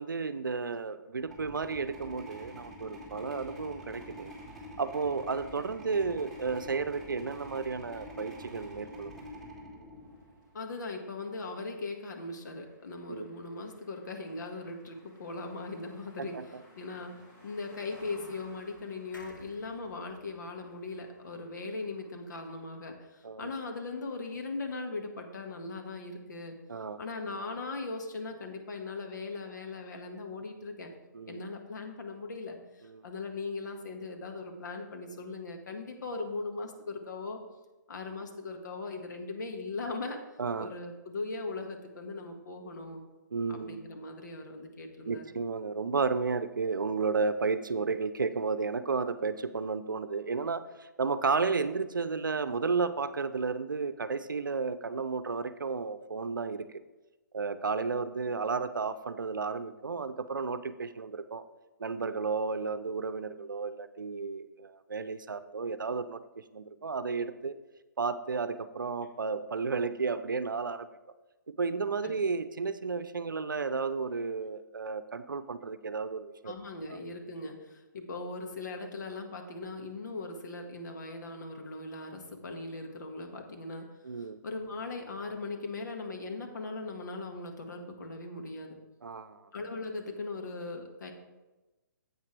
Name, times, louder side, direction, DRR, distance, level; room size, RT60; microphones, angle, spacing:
voice 1, 0.0-4.3 4.8-9.2 13.1-13.3 16.3-16.4 23.2-23.5 26.7-27.0 31.1-31.5 32.8-33.0 36.2-36.3 40.4-40.7 43.3-43.9 45.1-56.7 57.3-61.4 61.8-66.2 66.5-67.6 68.0-70.9 71.6-76.5 76.9-77.0 84.0-84.4 89.0-89.4, right 4 dB, 85° right, 13 dB, 0.6 m, -33 dB
sound 1, 1.2-10.5, equal, 5° left, 2.8 m, -46 dB
sound 2, 10.0-23.0, left 1 dB, 25° left, 2.0 m, -60 dB
voice 2, 10.5-16.4 16.8-26.6 27.0-30.9 31.3-37.4 37.9-40.2 40.6-43.0 43.5-45.2 72.0-72.1 76.4-83.9 84.2-88.8 89.5-91.1, left 3 dB, 65° left, 3 dB, 1.7 m, -39 dB
sound 3, 19.1-22.6 23.0-23.1 23.3-23.4, left 1 dB, 85° left, 2.0 m, -57 dB
10.5 x 8.1 x 3.3 m, 1.1 s
hypercardioid pair, 140°, 10 cm